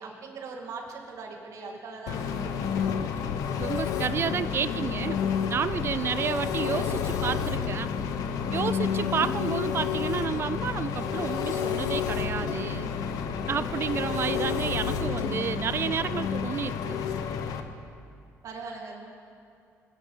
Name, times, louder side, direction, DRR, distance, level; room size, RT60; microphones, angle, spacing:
voice 1, 0.0-3.0 18.4-19.1, right 4 dB, 65° right, 0 dB, 2.3 m, -41 dB
Engine, 2.1-17.6, left 7 dB, 90° left, 0.8 m, -30 dB
voice 2, 3.6-5.2 5.5-7.9 8.5-12.9 13.5-17.0, right 7 dB, 45° right, 15 dB, 0.4 m, -30 dB
21.0 x 8.9 x 5.6 m, 2.5 s
cardioid pair, 100°, 6 cm